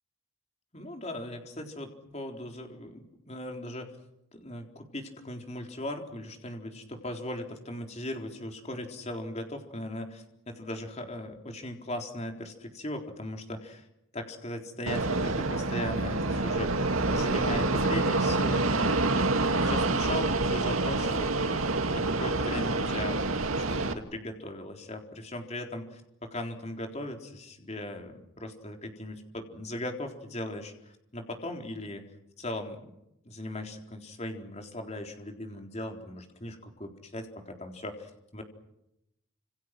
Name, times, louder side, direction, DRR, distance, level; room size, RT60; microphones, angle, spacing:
voice 1, 0.7-3.9 4.3-13.9 14.1-16.7 17.1-30.7 31.1-32.0 32.4-32.8 33.3-38.4, left 1 dB, 30° left, 3 dB, 4.0 m, -38 dB
Fixed-wing aircraft airplane, 14.9-23.9, right 2 dB, 85° right, 2.3 m, -27 dB
29.5 x 27.5 x 6.2 m, 0.84 s
head